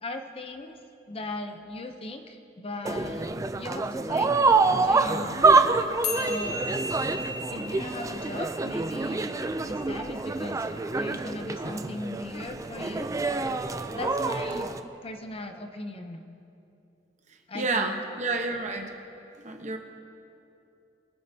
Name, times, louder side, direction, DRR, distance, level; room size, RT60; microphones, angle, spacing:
voice 1, 0.0-0.8 1.1-3.3 3.6-4.3 4.8-5.7 6.1-6.7 7.5-9.3 9.6-13.1 13.9-14.7 15.0-16.2 17.5-18.0, left 2 dB, 30° left, 6 dB, 0.6 m, -38 dB
sound 1, 2.9-14.8, right 3 dB, 20° right, 0.3 m, -26 dB
sound 2, 6.0-12.6, left 2 dB, 75° left, 1.1 m, -38 dB
voice 2, 17.5-19.0 19.4-19.8, right 3 dB, 40° right, 4 dB, 0.9 m, -29 dB
22.5 x 8.4 x 2.8 m, 2.7 s
head